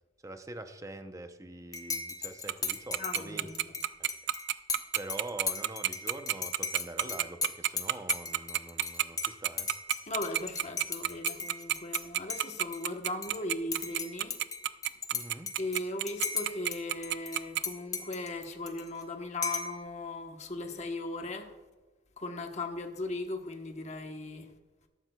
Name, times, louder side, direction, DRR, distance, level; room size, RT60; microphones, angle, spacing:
voice 1, 0.2-3.5 4.0-4.1 4.9-9.7 15.1-15.5, right 2 dB, 15° right, 0.6 m, -44 dB
Dishes pots and pans / Cutlery silverware / Chink clink, 1.7-12.0 12.3-13.4 13.7-16.8 17.0-19.0 19.4-19.8, left 5 dB, 20° left, 0.8 m, -37 dB
Tick-tock, 2.5-17.6, right 13 dB, 60° right, 0.4 m, -29 dB
voice 2, 3.0-3.8 10.1-14.4 15.6-21.5 22.2-24.5, left 2 dB, 40° left, 1.1 m, -38 dB
14.0 x 12.0 x 2.3 m
head